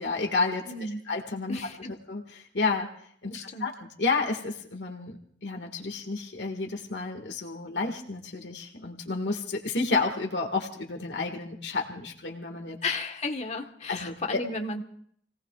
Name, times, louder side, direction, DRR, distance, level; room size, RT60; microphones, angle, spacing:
voice 1, 0.0-0.7 1.1-1.6 2.1-2.9 3.2-12.8 13.9-14.4, left 3 dB, 80° left, 2 dB, 1.9 m, -31 dB
voice 2, 0.7-1.0 1.5-1.9 3.3-3.7 12.8-14.8, left 3 dB, 40° left, 5 dB, 1.4 m, -33 dB
29.5 x 18.5 x 2.4 m, 0.63 s
head